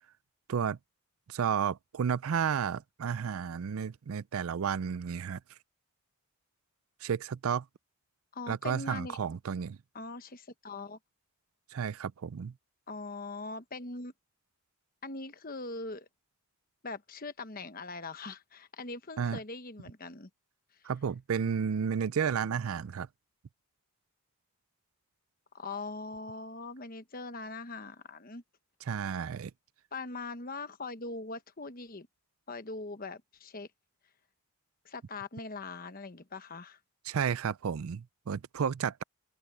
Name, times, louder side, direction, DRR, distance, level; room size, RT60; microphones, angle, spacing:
voice 1, 1.3-5.4 7.0-7.6 8.5-9.8 11.7-12.5 19.2-19.4 20.8-23.1 28.9-29.5 37.1-39.0, right 7 dB, 70° right, 0.4 m, -32 dB
voice 2, 8.3-9.2 9.9-11.0 12.9-14.1 15.0-16.1 16.8-20.3 25.5-28.4 29.9-32.1 32.5-33.7 34.8-36.8, left 3 dB, 40° left, 1.1 m, -41 dB
open air
head